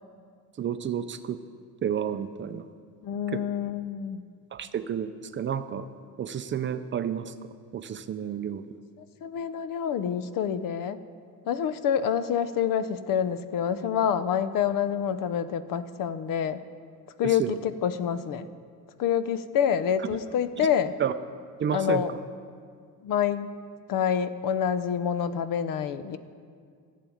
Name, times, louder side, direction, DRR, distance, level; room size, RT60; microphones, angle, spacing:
voice 1, 0.6-1.4 1.8-2.7 3.3-3.4 4.5-5.9 6.2-7.3 7.7-8.6 17.2-17.5 20.6-20.7 21.0-21.1 21.6-22.0, right 8 dB, 35° right, 11 dB, 0.5 m, -30 dB
voice 2, 3.0-4.3 9.2-11.0 11.5-16.6 17.2-18.5 19.0-21.0 21.7-22.1 23.0-23.5 23.9-26.2, left 8 dB, 65° left, 13 dB, 0.7 m, -27 dB
12.5 x 7.6 x 8.5 m, 2.1 s
cardioid pair, 135°, 36 cm